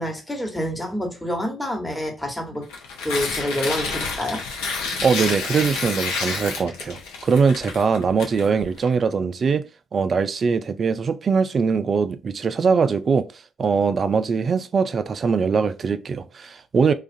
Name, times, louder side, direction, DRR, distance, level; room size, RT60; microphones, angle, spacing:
voice 1, 0.0-2.7 3.0-4.4, equal, 10° left, 1.1 m, -27 dB
Tearing, 2.6-8.9, left 4 dB, 75° left, 0.6 m, -29 dB
voice 2, 5.0-9.7 9.9-13.3 13.6-16.9, right 5 dB, 45° right, 0.3 m, -21 dB
2.4 x 2.4 x 2.6 m
hypercardioid pair, 45°, 0 cm